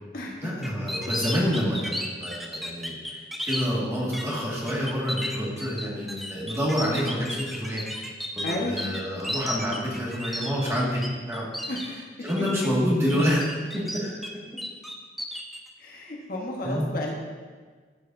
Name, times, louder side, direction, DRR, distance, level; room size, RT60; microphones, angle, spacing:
voice 1, 0.4-7.8 8.4-11.0 11.3-11.5 11.9-13.4 13.7-14.2 16.6-16.9, equal, 15° right, -6 dB, 1.9 m, -28 dB
sound 1, 0.6-3.6 4.1-4.4 4.7-11.1 11.3-11.9 12.3-12.7 13.1-14.3 14.6-15.6, equal, ahead, 0.6 m, -33 dB
voice 2, 8.4-8.8 11.7-12.0 15.8-17.1, left 1 dB, 50° left, -1 dB, 1.2 m, -32 dB
13.5 x 6.6 x 2.7 m, 1.5 s
head